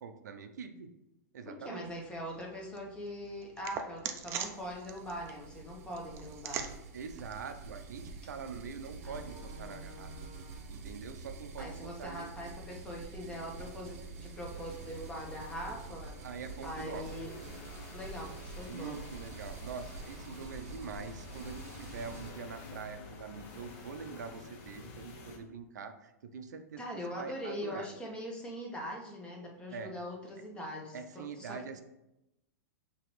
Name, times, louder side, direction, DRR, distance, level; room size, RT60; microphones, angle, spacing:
voice 1, 0.0-0.9 1.3-1.9 6.9-10.1 10.7-12.5 16.2-17.1 18.7-27.9 29.7-29.9 30.9-31.8, right 5 dB, 90° right, 8 dB, 0.5 m, -44 dB
voice 2, 1.4-6.7 9.0-10.9 11.6-16.2 16.6-17.3 17.9-19.0 26.8-31.6, equal, 10° left, -1 dB, 0.8 m, -42 dB
sound 1, 1.8-8.6, right 8 dB, 25° right, 0.4 m, -44 dB
sound 2, 4.2-22.3, right 4 dB, 55° right, 0.8 m, -47 dB
sound 3, 13.4-25.4, left 4 dB, 40° left, 0.7 m, -50 dB
5.8 x 3.0 x 3.1 m, 0.92 s
hypercardioid pair, 145°, 9 cm